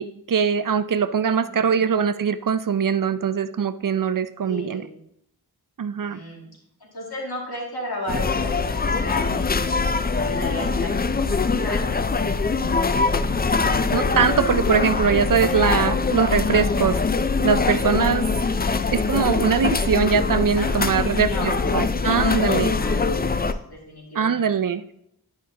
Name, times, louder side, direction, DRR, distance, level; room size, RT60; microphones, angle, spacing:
voice 1, 0.0-4.9 5.8-6.2 13.9-17.0 17.4-18.3 18.9-22.7 24.2-25.0, right 6 dB, 55° right, 13 dB, 0.5 m, -22 dB
voice 2, 1.4-1.9 4.4-5.0 6.0-6.5 6.8-9.8 10.2-11.9 20.5-22.5 22.8-24.5, left 1 dB, 70° left, -3 dB, 2.3 m, -35 dB
sound 1, 8.1-23.5, left 4 dB, 25° left, 0.3 m, -23 dB
10.5 x 5.5 x 2.8 m, 0.75 s
wide cardioid pair, 50°, 40 cm